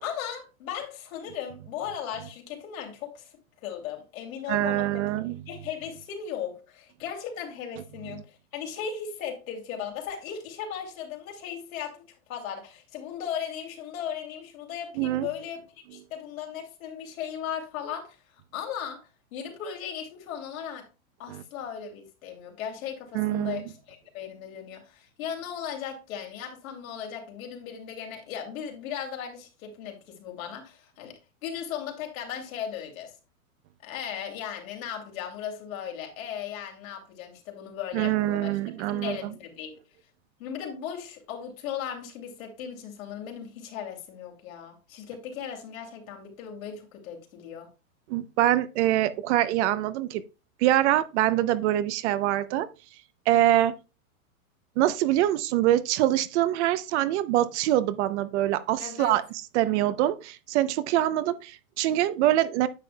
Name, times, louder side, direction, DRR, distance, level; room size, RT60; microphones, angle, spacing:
voice 1, 0.0-3.3 3.6-5.1 5.5-15.6 15.9-19.0 19.3-20.9 21.2-31.1 31.4-33.1 33.8-39.8 40.4-47.7 58.8-59.2, left 8 dB, 70° left, 2.8 m, -37 dB
voice 2, 4.5-5.4 15.0-15.3 21.3-21.4 23.1-23.6 37.9-39.2 48.1-50.2 50.6-52.7 53.3-53.7 54.8-59.2 59.5-62.7, right 13 dB, 55° right, 0.7 m, -24 dB
9.8 x 7.0 x 2.2 m
hypercardioid pair, 125°, 42 cm